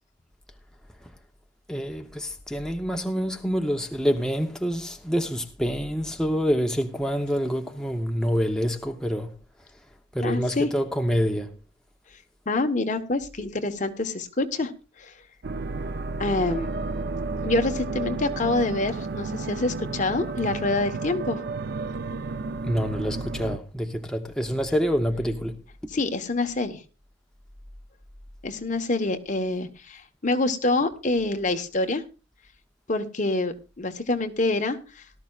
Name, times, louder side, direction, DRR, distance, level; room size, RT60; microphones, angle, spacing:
voice 1, 1.7-9.4 10.1-11.6 22.6-25.6, equal, 5° left, 0.8 m, -27 dB
voice 2, 10.2-10.7 12.5-14.7 15.0-15.1 16.2-16.7 17.4-21.4 25.9-26.8 28.4-32.0 32.9-35.0, left 2 dB, 40° left, 1.2 m, -26 dB
sound 1, 15.4-23.6, right 3 dB, 55° right, 0.5 m, -32 dB
18.0 x 13.0 x 2.4 m
head